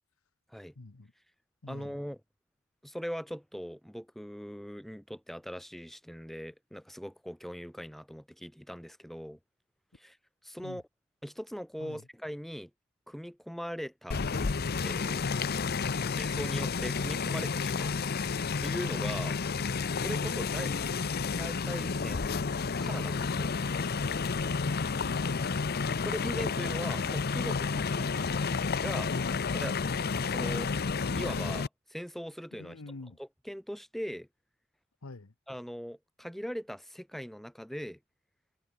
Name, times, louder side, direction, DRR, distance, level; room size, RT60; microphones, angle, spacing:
voice 1, 0.8-1.1 1.6-2.0 10.6-10.8 11.8-12.0 15.9-16.2 20.8-21.1 24.5-25.8 28.9-29.4 32.5-33.2 35.0-35.3, left 2 dB, 70° left, 1.1 m, -44 dB
voice 2, 1.7-2.2 2.8-9.4 9.9-10.2 10.4-10.8 11.2-12.7 13.1-14.2 14.8-15.4 16.0-18.0 18.6-19.4 19.9-20.9 21.4-22.3 22.8-23.5 26.0-28.1 28.8-29.1 29.5-29.7 30.2-30.7 31.2-32.8 33.2-34.3 35.5-38.0, equal, ahead, 2.0 m, -40 dB
sound 1, 14.1-31.7, left 5 dB, 45° left, 0.7 m, -31 dB
head